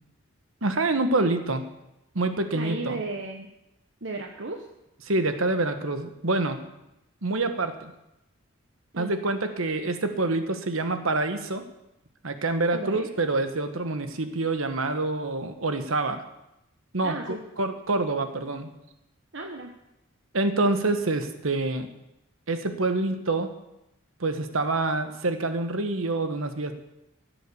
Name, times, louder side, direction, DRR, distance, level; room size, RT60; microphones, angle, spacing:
voice 1, 0.6-1.6 2.1-3.0 5.0-6.6 7.2-7.9 9.0-11.6 12.2-16.2 16.9-18.7 20.3-21.9 22.5-23.5 24.2-26.7, right 2 dB, 85° right, 8 dB, 1.3 m, -26 dB
voice 2, 2.5-3.5 4.0-4.6 8.9-9.1 12.7-13.1 17.0-17.4 19.3-19.7, right 2 dB, 60° right, 2 dB, 1.1 m, -34 dB
16.0 x 7.7 x 6.9 m, 0.90 s
head